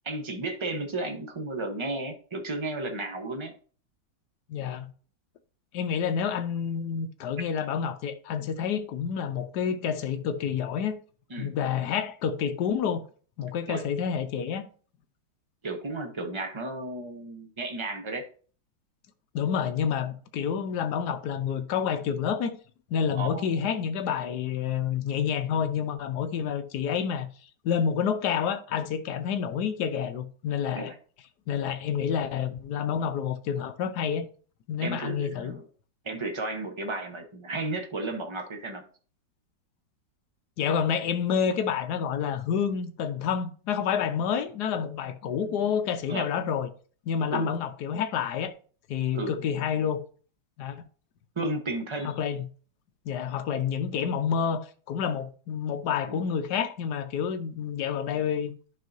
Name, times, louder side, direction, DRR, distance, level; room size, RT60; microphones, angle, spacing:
voice 1, 0.0-3.5 11.3-11.5 13.7-13.8 15.6-18.2 23.1-23.5 30.7-31.0 34.8-35.7 36.0-38.8 46.1-46.3 47.3-47.5 49.1-49.3 51.4-52.1 56.0-56.3, right 2 dB, 25° right, 0.7 m, -33 dB
voice 2, 4.5-4.9 5.7-10.9 11.4-13.1 13.4-14.7 19.3-22.6 22.9-27.3 27.6-30.9 31.5-34.3 34.7-35.5 40.6-46.7 47.1-48.5 48.9-50.0 50.6-50.8 52.0-52.5 53.1-58.5, left 7 dB, 70° left, 1.2 m, -28 dB
11.0 x 5.6 x 2.7 m
omnidirectional pair, 2.1 m